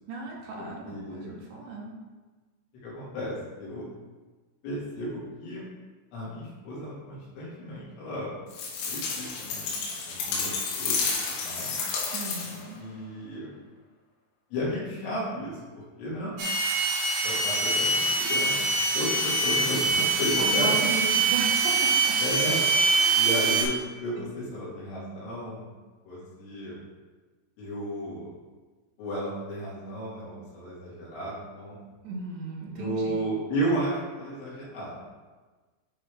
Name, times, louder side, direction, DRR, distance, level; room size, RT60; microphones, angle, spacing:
voice 1, 0.1-1.9 12.1-12.8 20.4-22.1 22.9-23.3 32.0-33.2, right 2 dB, 75° right, -1 dB, 3.0 m, -35 dB
voice 2, 0.8-1.3 2.8-3.9 4.6-5.6 6.1-8.3 8.9-9.7 10.1-11.7 12.8-13.5 14.5-16.3 17.2-20.8 22.2-22.7 23.2-25.7 26.1-26.8 27.6-28.3 29.0-31.8 32.7-35.0, equal, 60° left, -7 dB, 3.7 m, -33 dB
sound 1, 8.5-12.7, left 4 dB, 80° left, 3.8 m, -31 dB
sound 2, 16.4-23.6, right 3 dB, 90° right, 4.1 m, -24 dB
9.0 x 5.3 x 3.4 m, 1.3 s
omnidirectional pair, 5.9 m